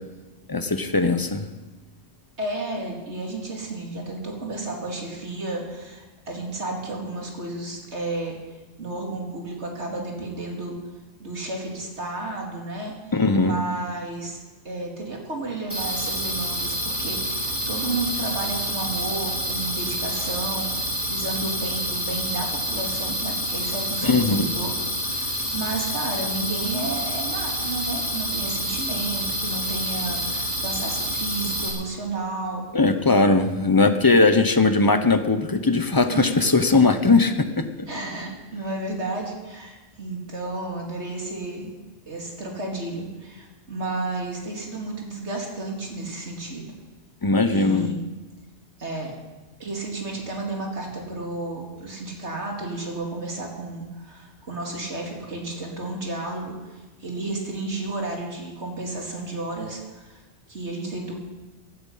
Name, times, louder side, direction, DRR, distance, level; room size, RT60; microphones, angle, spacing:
voice 1, 0.5-1.5 13.1-13.5 24.0-24.5 32.7-37.9 47.2-47.9, left 3 dB, 20° left, 9 dB, 0.8 m, -19 dB
voice 2, 2.4-8.4 8.8-10.8 11.2-14.4 14.6-24.7 25.0-32.7 36.1-36.3 37.9-41.7 42.1-46.7 47.5-48.0 48.8-49.1 49.6-60.2 60.5-61.1, right 2 dB, 80° right, 0 dB, 3.2 m, -32 dB
sound 1, 15.7-31.7, equal, 35° right, 5.3 m, -28 dB
16.0 x 13.0 x 5.7 m, 1.2 s
omnidirectional pair, 1.1 m